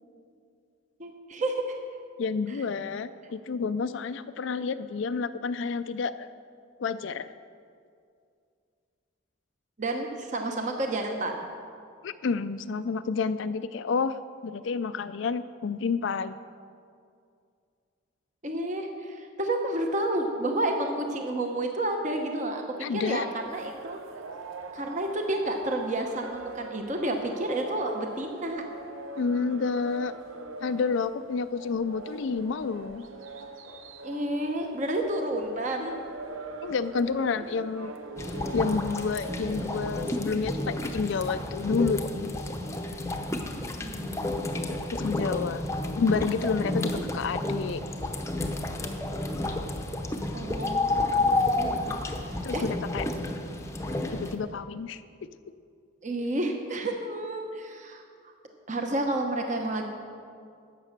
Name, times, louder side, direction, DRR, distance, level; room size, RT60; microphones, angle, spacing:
voice 1, 1.0-1.6 2.5-2.6 9.8-11.5 18.4-22.6 22.9-24.0 24.7-28.6 34.0-35.9 43.8-44.3 46.9-47.1 50.3-52.0 52.5-52.6 56.0-58.3 58.7-59.9, right 1 dB, 35° right, 3 dB, 0.9 m, -30 dB
voice 2, 2.2-6.3 6.8-7.3 12.0-16.4 22.8-23.3 29.2-30.1 30.6-33.0 36.6-37.9 38.5-42.4 44.9-45.7 46.0-47.8 52.4-53.1 54.1-55.3, left 5 dB, 65° left, 12 dB, 0.4 m, -29 dB
sound 1, 23.4-40.5, right 3 dB, 80° right, 0.8 m, -43 dB
sound 2, 38.2-54.4, left 2 dB, 15° left, 0.7 m, -31 dB
12.0 x 8.3 x 6.6 m, 2.3 s
head